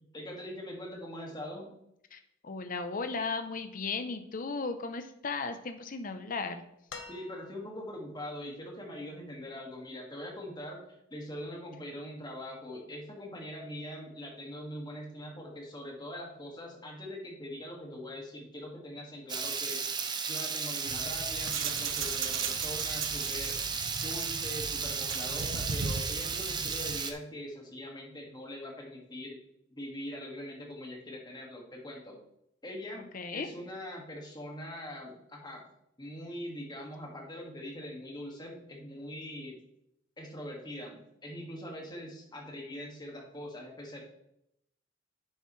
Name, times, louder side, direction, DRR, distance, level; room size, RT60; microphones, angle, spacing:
voice 1, 0.0-1.7 7.1-10.8 11.1-19.8 20.3-23.7 24.0-29.4 29.7-32.2 32.6-33.0 33.3-35.7 36.0-39.6 40.2-44.0, left 1 dB, 20° left, -1 dB, 2.0 m, -42 dB
voice 2, 2.1-6.6 33.1-33.5, left 4 dB, 45° left, 8 dB, 0.7 m, -36 dB
sound 1, 6.9-7.9 9.4-9.5, left 4 dB, 90° left, 1.2 m, -47 dB
Water tap faucet / Liquid, 19.3-27.1, right 5 dB, 20° right, 0.7 m, -34 dB
sound 2, 20.9-27.0, right 5 dB, 80° right, 0.8 m, -38 dB
10.0 x 7.0 x 3.2 m, 0.78 s
head